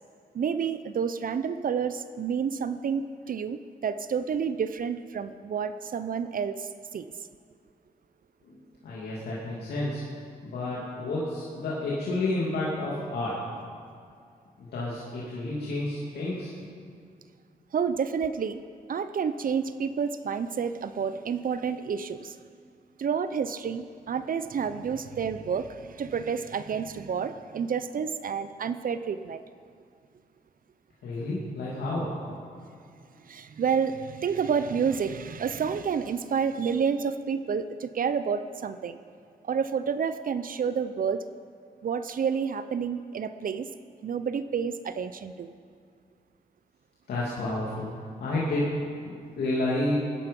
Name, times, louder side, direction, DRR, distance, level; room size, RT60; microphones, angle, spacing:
voice 1, 0.3-7.1 17.7-18.6 18.9-22.3 23.0-29.4 33.3-39.0 39.4-41.2 41.8-43.7 44.0-45.5, right 6 dB, 60° right, 12 dB, 0.7 m, -29 dB
voice 2, 8.4-10.0 10.4-13.4 14.6-16.5 31.0-32.1 47.1-47.9 48.2-48.8 49.0-49.9, left 2 dB, 85° left, -7 dB, 2.7 m, -30 dB
19.0 x 10.5 x 5.4 m, 2.3 s
cardioid pair, 55°, 16 cm